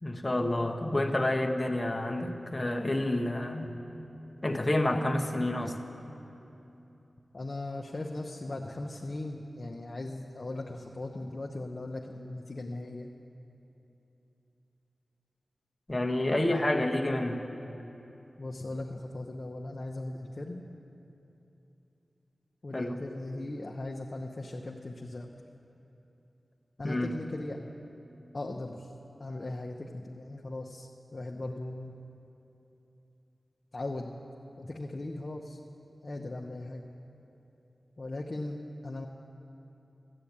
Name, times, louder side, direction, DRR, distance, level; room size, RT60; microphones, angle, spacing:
voice 1, 0.0-3.7 4.4-5.9 15.9-17.5 22.7-23.0 26.8-27.2, left 1 dB, 25° left, 3 dB, 1.0 m, -29 dB
voice 2, 7.3-13.1 18.4-20.7 22.6-25.3 26.8-27.6 28.3-28.9 29.2-31.9 33.7-34.1 34.6-35.6 36.0-36.8 38.0-39.1, left 2 dB, 45° left, 0 dB, 0.8 m, -38 dB
13.5 x 9.4 x 8.7 m, 3.0 s
wide cardioid pair, 65°, 0 cm